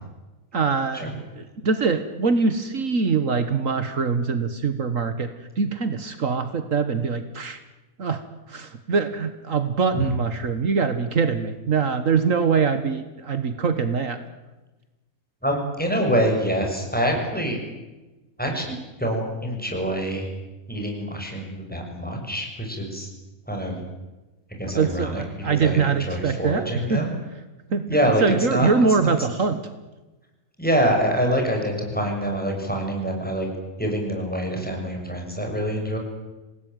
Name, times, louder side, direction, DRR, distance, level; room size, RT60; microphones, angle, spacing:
voice 1, 0.5-1.1 1.4-5.3 5.6-7.6 8.0-8.2 8.5-14.2 24.7-26.6 26.9-27.0 27.7-27.8 28.2-29.6, right 5 dB, 65° right, 10 dB, 1.8 m, -23 dB
voice 2, 15.4-17.6 18.4-18.7 19.0-20.3 20.7-23.1 23.5-23.8 24.6-27.1 27.9-28.7 29.0-29.1 30.6-33.5 33.8-36.0, equal, 5° left, 1 dB, 6.7 m, -25 dB
26.5 x 19.0 x 9.2 m, 1.1 s
omnidirectional pair, 1.5 m